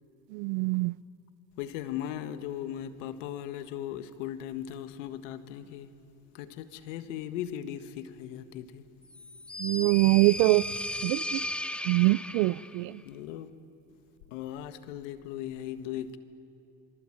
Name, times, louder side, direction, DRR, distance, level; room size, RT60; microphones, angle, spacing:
voice 1, 0.3-0.9 9.6-10.6 11.0-11.4 11.9-12.9, right 23 dB, 75° right, 0.6 m, -24 dB
voice 2, 1.6-5.9 6.3-8.8 13.0-13.5 14.3-16.2, left 11 dB, 85° left, 1.6 m, -38 dB
sound 1, 9.1-12.8, left 1 dB, 5° left, 0.6 m, -36 dB
27.0 x 24.5 x 8.8 m
supercardioid pair, 120°, 37 cm